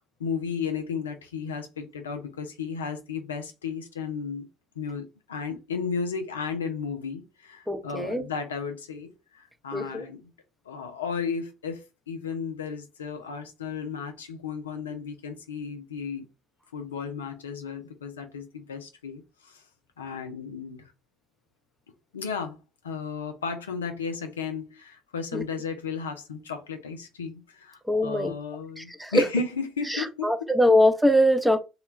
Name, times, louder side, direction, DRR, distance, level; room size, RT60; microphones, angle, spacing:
voice 1, 0.0-4.5 4.8-10.3 10.7-16.3 16.7-19.6 20.0-20.9 22.1-22.6 22.8-30.5, left 5 dB, 85° left, 0.4 m, -34 dB
voice 2, 7.7-8.3 9.7-10.1 25.3-25.4 27.9-28.3 28.8-29.2 29.9-31.6, left 1 dB, 5° right, 0.5 m, -22 dB
2.2 x 2.1 x 3.1 m
hypercardioid pair, 55°, 0 cm